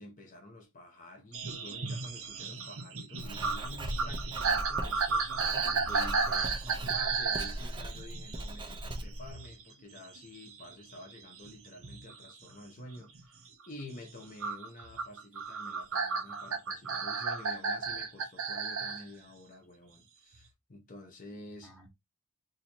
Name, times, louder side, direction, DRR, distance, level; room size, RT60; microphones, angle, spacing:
voice 1, 0.0-5.9 6.9-21.8, left 1 dB, 35° left, 0.8 m, -49 dB
sound 1, 1.3-9.6 10.0-12.3 12.8-13.2 14.4-19.0 20.3-20.4, right 4 dB, 60° right, 0.7 m, -34 dB
Writing, 3.2-9.3, right 1 dB, 20° right, 0.5 m, -39 dB
voice 2, 5.7-6.8 21.6-21.9, equal, 5° left, 0.9 m, -47 dB
2.8 x 2.6 x 4.3 m
head